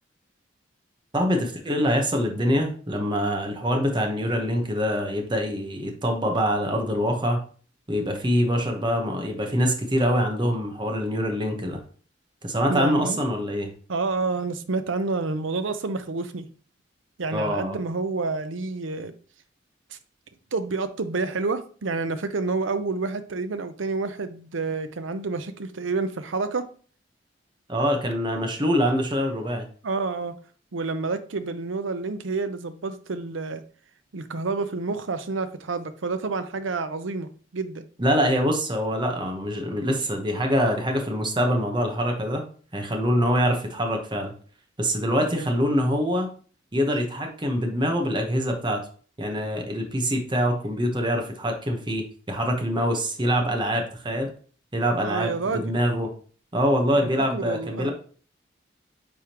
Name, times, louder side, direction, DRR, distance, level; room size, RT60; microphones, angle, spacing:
voice 1, 1.1-7.4 7.9-11.8 12.4-13.7 17.3-17.8 27.7-29.7 38.0-42.4 42.7-44.3 44.8-46.3 46.7-48.8 49.2-54.3 54.7-56.1 56.5-57.9, equal, 25° right, 1.0 m, -24 dB
voice 2, 12.7-13.2 13.9-16.5 17.2-19.1 19.9-20.0 20.5-26.7 29.8-30.4 30.7-33.6 34.1-37.9 45.3-45.4 55.0-55.7 57.0-57.9, right 3 dB, 85° right, 0.6 m, -29 dB
9.5 x 3.6 x 3.0 m
head